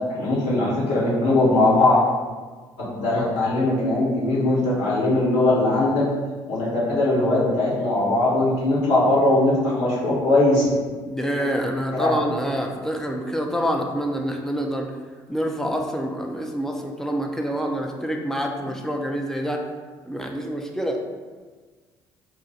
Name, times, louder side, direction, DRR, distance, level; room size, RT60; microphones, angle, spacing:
voice 1, 0.1-2.0 2.8-6.0 6.5-10.7 11.9-12.2, left 2 dB, 70° left, -7 dB, 1.2 m, -20 dB
voice 2, 11.0-15.0 15.3-19.7 20.0-21.0, equal, 5° left, 2 dB, 0.5 m, -27 dB
2.8 x 2.5 x 4.0 m, 1.4 s
hypercardioid pair, 55°, 12 cm